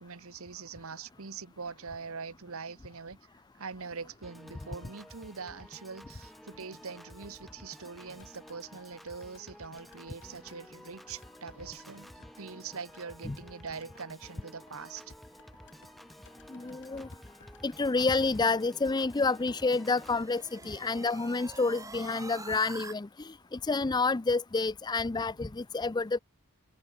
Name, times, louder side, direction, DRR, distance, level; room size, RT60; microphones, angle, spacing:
voice 1, 0.0-3.3 3.5-15.1 25.2-25.3, right 5 dB, 65° right, 1.2 m, -43 dB
Piano / Organ, 4.2-20.2, equal, ahead, 5.9 m, -52 dB
sound 1, 8.2-20.4 20.6-20.7, left 4 dB, 55° left, 7.4 m, -62 dB
voice 2, 16.5-17.1 17.6-26.2, left 3 dB, 20° left, 0.5 m, -29 dB
sound 2, 19.0-22.9, right 3 dB, 15° right, 1.8 m, -46 dB
head